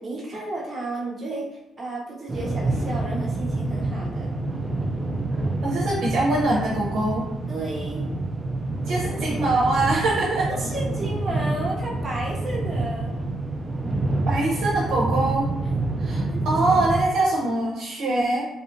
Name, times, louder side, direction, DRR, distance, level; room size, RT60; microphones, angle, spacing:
voice 1, 0.0-1.5 1.8-4.3 7.5-8.0 10.5-13.2 15.6-15.7 16.3-16.5, right 2 dB, 35° right, -3 dB, 0.7 m, -32 dB
sound 1, 2.3-17.1, right 2 dB, 20° right, 0.3 m, -27 dB
voice 2, 5.6-7.3 8.9-10.5 14.3-15.5 16.0-18.5, right 2 dB, 75° right, -4 dB, 0.6 m, -23 dB
2.7 x 2.4 x 2.5 m, 0.91 s
cardioid pair, 90°, 0 cm